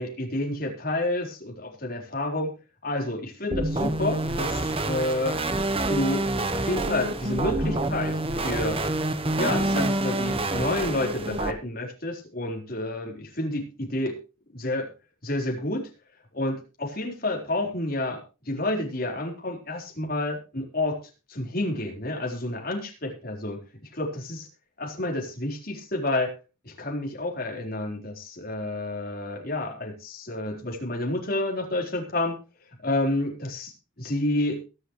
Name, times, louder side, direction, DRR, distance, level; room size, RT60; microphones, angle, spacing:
voice 1, 0.0-2.5 2.8-5.4 5.9-6.3 6.5-8.8 9.4-14.2 14.5-14.9 15.2-15.9 16.3-18.2 18.4-21.0 21.3-23.6 23.9-24.5 24.8-26.3 26.6-32.4 32.8-34.6, left 1 dB, 45° left, 1 dB, 4.4 m, -29 dB
sound 1, 3.5-11.5, right 2 dB, 25° right, 1.1 m, -27 dB
22.5 x 8.0 x 3.2 m, 0.32 s
head